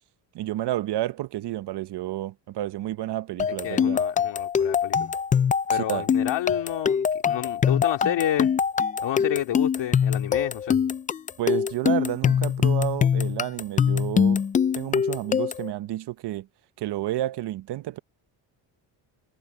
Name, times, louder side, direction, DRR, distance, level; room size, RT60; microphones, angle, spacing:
voice 1, 0.3-4.0 5.7-6.2 11.4-14.4 14.7-16.5 16.8-18.0, right 14 dB, 60° right, 1.0 m, -30 dB
sound 1, 3.4-15.7, left 7 dB, 20° left, 0.3 m, -23 dB
voice 2, 3.6-5.1 5.7-8.5 9.0-10.8, left 12 dB, 60° left, 2.5 m, -30 dB
cardioid pair, 95°, 47 cm